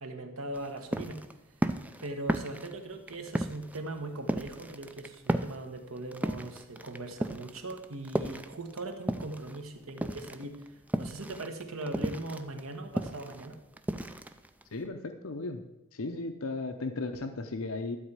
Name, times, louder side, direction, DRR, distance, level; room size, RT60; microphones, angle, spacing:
voice 1, 0.0-1.2 2.0-13.6, right 2 dB, 70° right, 5 dB, 1.3 m, -40 dB
sound 1, 0.5-9.6 9.9-14.9, right 1 dB, 5° right, 0.4 m, -34 dB
voice 2, 14.7-15.6 15.9-18.0, left 3 dB, 65° left, 7 dB, 0.8 m, -35 dB
12.0 x 4.3 x 8.1 m, 0.91 s
head